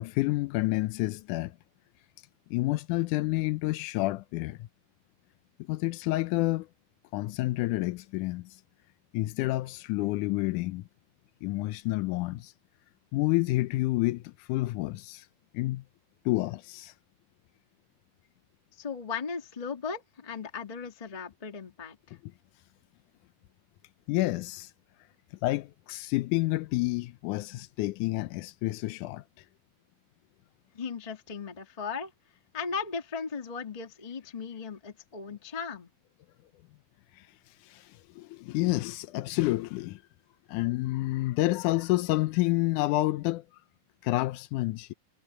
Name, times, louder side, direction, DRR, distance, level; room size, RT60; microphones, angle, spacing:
voice 1, 0.0-1.6 2.5-4.7 5.6-6.7 7.1-8.6 9.1-10.9 11.4-12.5 13.1-15.3 15.5-15.8 16.3-16.9 24.1-24.7 25.4-29.5 37.1-40.0 40.5-43.4 44.0-44.9, left 19 dB, 75° left, 1.9 m, -29 dB
voice 2, 18.7-22.2 30.7-32.1 32.5-35.9, left 5 dB, 20° left, 1.1 m, -37 dB
omnidirectional pair, 4.1 m